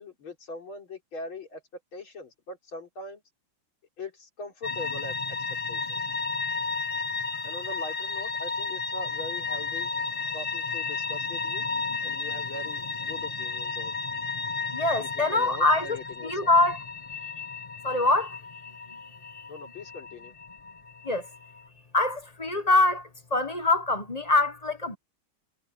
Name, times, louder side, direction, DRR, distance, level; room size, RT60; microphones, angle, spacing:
voice 1, 0.0-1.6 1.9-3.2 4.0-6.0 7.4-9.9 10.3-11.6 12.0-14.0 15.0-16.5 19.5-20.3, left 2 dB, 80° left, 4.6 m, -41 dB
sound 1, 4.6-21.6, left 4 dB, 40° left, 0.4 m, -33 dB
voice 2, 14.7-16.0 16.2-16.8 17.8-18.3 21.0-21.3 21.9-25.0, left 2 dB, 25° left, 1.0 m, -24 dB
omnidirectional pair, 2.2 m